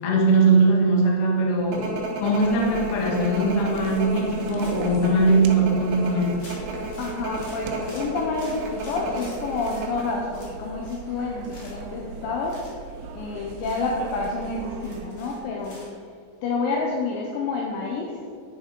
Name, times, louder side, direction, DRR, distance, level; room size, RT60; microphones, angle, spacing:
voice 1, 0.0-6.4, right 2 dB, 60° left, -3 dB, 1.5 m, -21 dB
sound 1, 1.7-10.1, right 2 dB, 55° right, 3.0 m, -33 dB
sound 2, 2.4-15.1, right 5 dB, 75° right, 2.6 m, -40 dB
sound 3, 4.6-5.0 5.5-5.6 5.8-6.0 6.4-9.8 10.3-11.1 11.3-11.9 12.4-12.7 13.2-13.3 13.6-15.9, left 1 dB, 35° left, 1.7 m, -48 dB
voice 2, 7.0-12.6 13.1-15.9 16.4-18.2, left 3 dB, 75° left, -1 dB, 2.1 m, -29 dB
11.0 x 7.0 x 5.3 m, 2.3 s
omnidirectional pair, 5.1 m